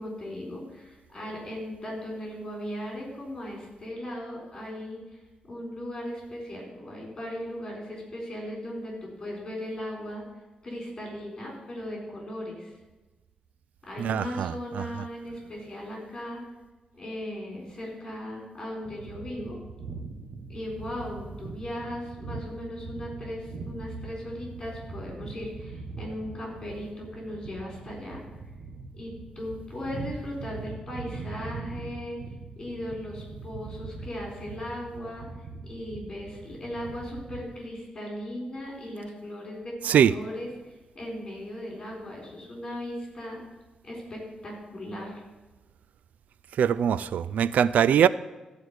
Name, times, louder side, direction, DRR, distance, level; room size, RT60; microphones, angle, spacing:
voice 1, 0.0-5.0 5.5-10.2 10.6-12.7 13.8-16.4 16.9-19.6 20.5-28.2 28.9-32.2 32.6-35.2 35.6-40.5 40.9-43.4 43.8-45.2, left 1 dB, 30° left, 4.0 m, -37 dB
voice 2, 14.0-14.9 39.8-40.1 46.6-48.1, right 9 dB, 85° right, 0.3 m, -22 dB
sound 1, 18.8-37.5, right 4 dB, 65° right, 1.1 m, -41 dB
14.0 x 4.8 x 8.1 m
wide cardioid pair, 175°, 3 cm